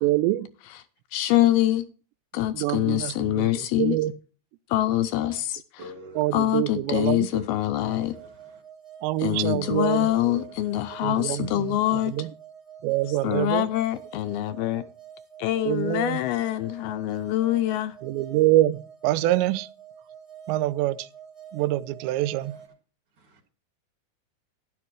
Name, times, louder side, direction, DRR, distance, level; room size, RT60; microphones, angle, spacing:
voice 1, 0.0-0.5 2.5-3.5 3.8-4.1 6.2-7.3 9.0-10.1 11.0-11.7 12.1-12.3 12.8-13.7 15.7-16.2 18.0-19.7 20.5-21.1 21.5-22.6, right 15 dB, 90° right, 2.9 m, -25 dB
voice 2, 1.1-1.8 2.3-4.0 4.7-5.9 6.3-8.2 9.2-12.3 13.1-14.8 15.4-18.0, left 13 dB, 80° left, 2.3 m, -25 dB
voice 3, 5.8-6.2 7.3-7.5 9.6-10.4 11.3-11.4, right 3 dB, 50° right, 3.0 m, -41 dB
sound 1, 7.7-22.7, right 8 dB, ahead, 1.3 m, -47 dB
12.5 x 11.0 x 3.1 m
omnidirectional pair, 4.9 m